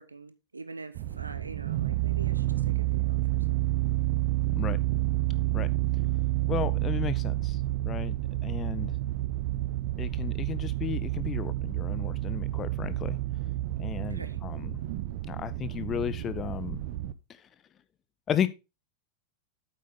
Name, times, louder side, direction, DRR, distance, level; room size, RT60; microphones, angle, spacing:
voice 1, 0.0-3.8 8.9-9.1 14.1-14.4, right 3 dB, 80° right, 1.1 m, -45 dB
sound 1, 0.9-17.1, right 16 dB, 50° right, 0.7 m, -29 dB
voice 2, 6.5-7.6 7.8-8.2 8.4-8.9 10.0-13.2 13.8-14.8 15.3-16.8 18.3-18.5, left 9 dB, 25° left, 0.8 m, -33 dB
8.5 x 8.3 x 3.7 m
figure-of-eight pair, 90°, 0 cm